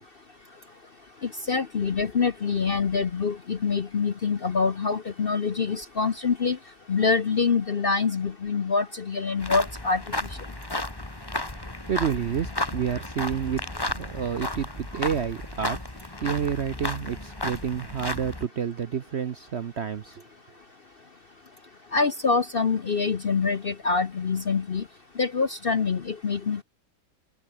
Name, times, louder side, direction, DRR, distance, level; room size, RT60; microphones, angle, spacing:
voice 1, 1.5-6.6 6.9-10.0 21.9-24.8 25.2-26.6, left 5 dB, 45° left, 0.8 m, -25 dB
sound 1, 9.4-18.5, left 1 dB, 15° left, 2.1 m, -33 dB
voice 2, 11.9-13.7 13.9-15.8 16.2-20.2, right 8 dB, 50° right, 0.8 m, -29 dB
omnidirectional pair, 1.9 m